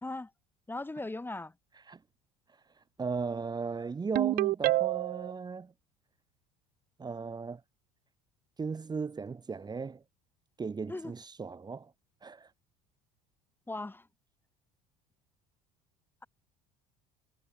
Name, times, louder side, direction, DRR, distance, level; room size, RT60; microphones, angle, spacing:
voice 1, 0.7-1.5 10.9-11.1 13.7-14.0, left 2 dB, 10° left, 1.8 m, -38 dB
voice 2, 3.0-5.7 7.0-7.6 8.6-10.0 10.6-11.9 12.2-12.5, right 5 dB, 20° right, 1.6 m, -36 dB
Ringtone, 4.1-5.3, right 18 dB, 50° right, 0.8 m, -27 dB
figure-of-eight pair, 65°, 19 cm